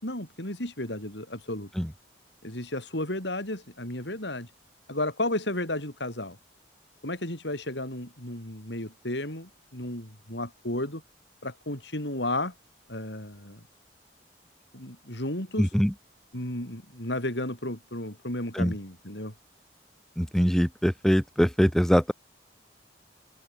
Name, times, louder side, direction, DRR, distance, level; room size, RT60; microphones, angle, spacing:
voice 1, 0.0-1.7 2.4-4.5 4.9-6.4 7.0-11.0 11.4-12.5 12.9-13.6 14.7-15.7 16.3-19.3, left 1 dB, 80° left, 7.7 m, -33 dB
voice 2, 15.6-15.9 18.5-18.7 20.2-22.1, equal, 5° left, 1.4 m, -23 dB
open air
head